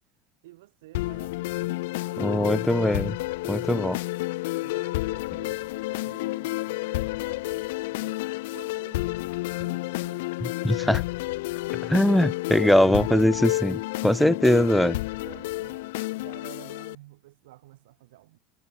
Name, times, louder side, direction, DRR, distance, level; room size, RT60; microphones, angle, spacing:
voice 1, 0.4-2.6 4.6-10.3 12.6-12.8 15.2-18.4, right 18 dB, 70° right, 7.8 m, -51 dB
sound 1, 0.9-16.9, left 20 dB, 70° left, 0.4 m, -30 dB
voice 2, 2.2-3.2 3.5-4.0 10.6-11.0 11.9-15.0, equal, ahead, 0.4 m, -21 dB
hypercardioid pair, 80°, 0 cm